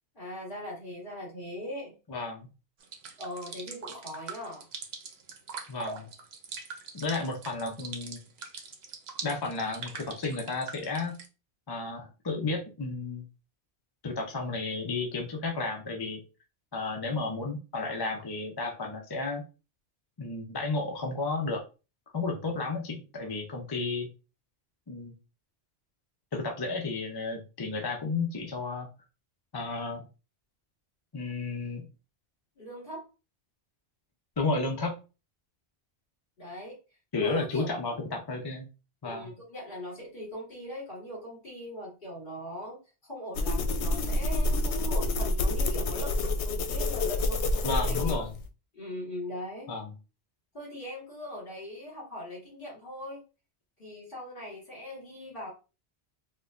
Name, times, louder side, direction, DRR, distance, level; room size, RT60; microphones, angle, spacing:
voice 1, 0.1-2.0 3.2-4.7 32.6-33.1 36.4-36.8 37.2-37.8 39.0-42.8 43.0-47.6 47.9-48.2 48.7-49.7 50.5-53.2 53.8-55.5, equal, 50° left, -5 dB, 2.3 m, -40 dB
voice 2, 2.1-2.5 5.7-6.1 6.9-8.2 9.2-11.2 11.7-13.3 14.0-16.2 16.7-19.4 20.2-21.6 22.1-24.1 24.9-25.1 26.3-28.9 29.5-30.0 31.1-31.8 34.4-35.0 37.1-38.7 39.0-39.3 47.6-48.3 49.7-49.9, left 3 dB, 35° left, 2 dB, 0.4 m, -32 dB
sound 1, 2.8-11.3, right 5 dB, 70° right, 0.9 m, -42 dB
sound 2, 43.3-48.5, left 2 dB, 85° left, 0.9 m, -28 dB
4.3 x 2.2 x 2.4 m, 0.31 s
omnidirectional pair, 1.1 m